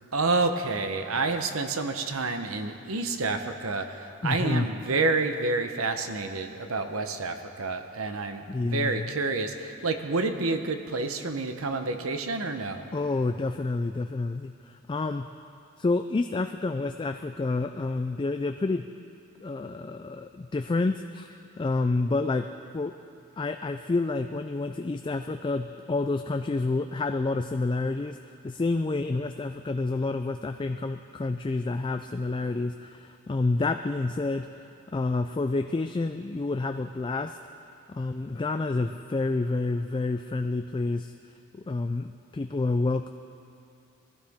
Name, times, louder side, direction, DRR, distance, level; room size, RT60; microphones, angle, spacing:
voice 1, 0.1-12.9, right 3 dB, 70° right, 7 dB, 0.9 m, -29 dB
voice 2, 4.2-4.7 8.5-9.1 12.9-15.3 15.8-18.9 19.4-21.3 21.6-22.5 22.7-22.9 23.4-28.2 28.4-34.5 34.9-37.4 37.9-41.1 41.5-43.1, left 3 dB, 20° left, 7 dB, 0.3 m, -29 dB
21.0 x 15.5 x 3.6 m, 2.6 s
head